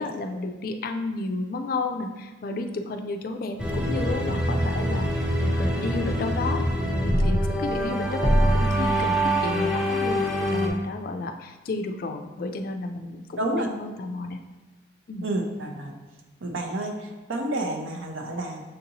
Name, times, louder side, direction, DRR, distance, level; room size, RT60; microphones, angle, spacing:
voice 1, 0.0-6.6 6.9-14.4 15.1-15.2, left 3 dB, 45° left, 5 dB, 0.3 m, -32 dB
sound 1, 3.6-10.7, equal, 5° right, 0.5 m, -24 dB
voice 2, 13.4-13.7 15.2-15.9 16.4-18.6, right 1 dB, 90° right, 2 dB, 0.7 m, -29 dB
6.5 x 2.6 x 2.8 m, 1.1 s
head